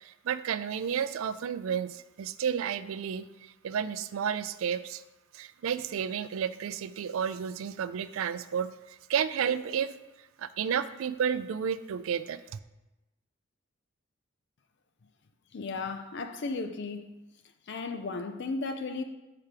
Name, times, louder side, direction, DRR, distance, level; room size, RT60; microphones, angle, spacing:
voice 1, 0.0-3.3 3.6-5.0 5.3-8.7 9.1-9.9 10.4-12.4, right 8 dB, 70° right, 0.3 m, -31 dB
voice 2, 15.5-17.1 17.7-19.0, left 3 dB, 50° left, 0.4 m, -35 dB
5.7 x 5.0 x 5.8 m
head